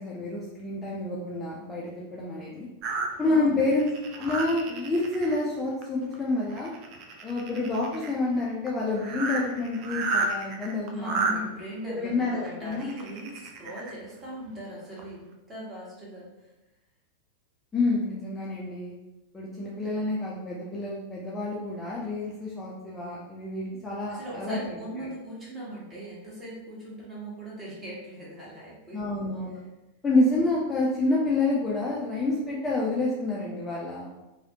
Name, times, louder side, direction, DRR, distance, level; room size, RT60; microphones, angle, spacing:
voice 1, 0.0-2.7 3.2-3.9 4.2-6.7 7.2-11.4 11.9-12.9 17.7-18.9 19.3-25.1 28.9-29.6 30.0-34.1, left 2 dB, 15° left, -5 dB, 0.5 m, -28 dB
sound 1, 2.8-5.4 5.8-6.1 6.4-8.1 8.7-8.8 8.9-11.3 12.4-13.9 14.5-14.6 15.0-15.1, right 3 dB, 40° right, 0.4 m, -32 dB
voice 2, 3.2-3.5 10.9-16.5 24.1-29.3, right 1 dB, 20° right, -7 dB, 1.3 m, -39 dB
3.2 x 2.3 x 2.7 m, 0.99 s
figure-of-eight pair, 90°, 0 cm